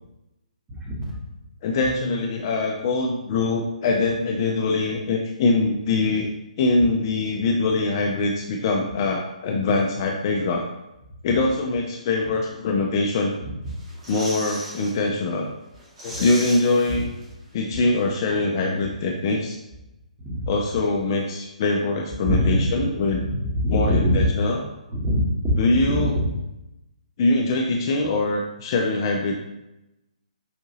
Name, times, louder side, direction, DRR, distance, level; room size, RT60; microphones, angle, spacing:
voice 1, 0.7-1.1 16.1-16.2 20.2-20.5 22.2-22.8 23.5-24.2 24.9-26.3, equal, 15° right, -5 dB, 1.0 m, -23 dB
voice 2, 1.6-6.3 6.6-10.6 11.2-13.3 14.1-15.5 16.0-17.1 17.5-19.6 20.5-23.2 23.7-24.6 25.6-26.2 27.2-29.4, left 3 dB, 35° left, 1 dB, 0.4 m, -23 dB
sound 1, 13.7-15.0 15.3-15.4 15.7-17.5 17.8-17.9, right 1 dB, 45° right, 1.4 m, -37 dB
4.9 x 2.6 x 2.8 m, 0.93 s
figure-of-eight pair, 135°, 4 cm